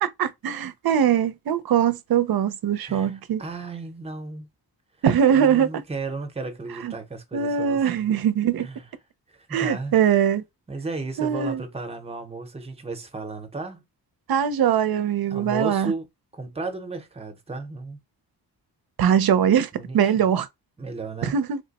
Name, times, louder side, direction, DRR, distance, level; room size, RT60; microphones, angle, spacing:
voice 1, 0.0-3.4 5.0-5.8 6.8-6.9 7.3-8.7 9.5-10.4 11.2-11.6 14.3-15.9 19.0-20.5 21.2-21.6, right 8 dB, 65° right, 0.5 m, -22 dB
voice 2, 2.8-4.5 5.3-8.1 8.6-8.8 9.3-9.9 10.7-13.8 15.3-16.1 16.3-18.0 19.8-20.0 20.8-21.4, right 3 dB, 15° right, 0.7 m, -34 dB
3.2 x 2.1 x 4.0 m
wide cardioid pair, 160°, 40 cm